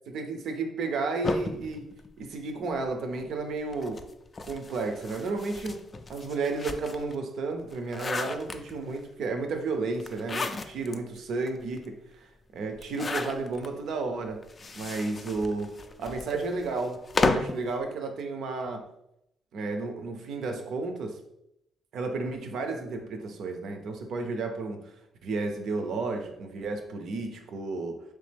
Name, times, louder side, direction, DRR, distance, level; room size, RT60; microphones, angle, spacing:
voice 1, 0.1-4.0 4.5-5.8 6.1-14.4 14.7-18.9 19.5-21.2 21.9-24.9 25.2-28.0, right 3 dB, 70° right, 0.5 m, -32 dB
sound 1, 1.2-2.8 3.7-7.1 7.6-9.0 10.0-11.0 11.5-11.6 11.8-11.9 12.8-13.7 14.4-17.6, left 3 dB, 35° left, 0.3 m, -33 dB
3.3 x 3.1 x 3.3 m
cardioid pair, 90°, 0 cm